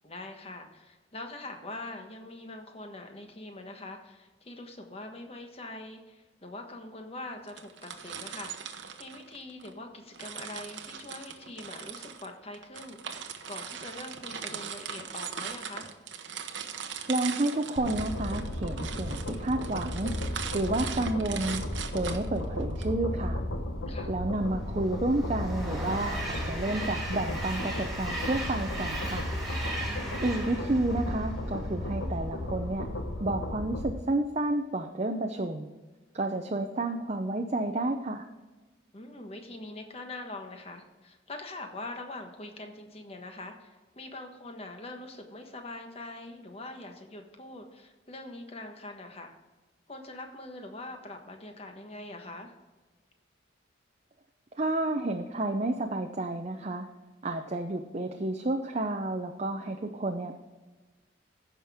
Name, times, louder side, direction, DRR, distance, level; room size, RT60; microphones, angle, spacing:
voice 1, 0.0-15.9 23.9-24.1 29.9-30.2 38.9-49.3 49.9-52.5, left 2 dB, 30° left, 4 dB, 1.3 m, -43 dB
sound 1, 7.5-9.7 10.1-22.8, right 7 dB, 70° right, 0.9 m, -40 dB
voice 2, 17.1-20.1 20.5-21.6 21.9-23.4 24.1-29.3 30.2-32.9 33.2-35.7 36.1-38.3 54.6-56.9 57.2-60.3, right 2 dB, 35° right, 4 dB, 0.6 m, -30 dB
sound 2, 17.8-33.9, left 1 dB, 80° left, 1.2 m, -34 dB
Train, 24.4-31.9, right 1 dB, ahead, 2.7 m, -38 dB
15.0 x 6.0 x 3.6 m, 1.2 s
head